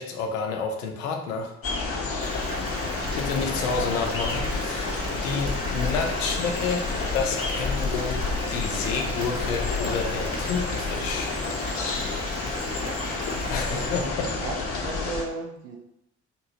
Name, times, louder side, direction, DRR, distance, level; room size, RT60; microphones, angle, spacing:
voice 1, 0.0-1.5 2.0-2.4 3.2-11.4 13.5-14.4, left 5 dB, 80° left, 3 dB, 0.5 m, -30 dB
sound 1, 1.6-15.2, left 3 dB, 35° left, 0.7 m, -29 dB
Water tap faucet / Bathtub (filling or washing) / Fill (with liquid), 2.2-14.0, right 2 dB, 15° right, 0.6 m, -38 dB
voice 2, 12.9-15.8, right 3 dB, 80° right, 1 dB, 0.6 m, -37 dB
2.8 x 2.6 x 2.8 m, 0.80 s
figure-of-eight pair, 45°, 38 cm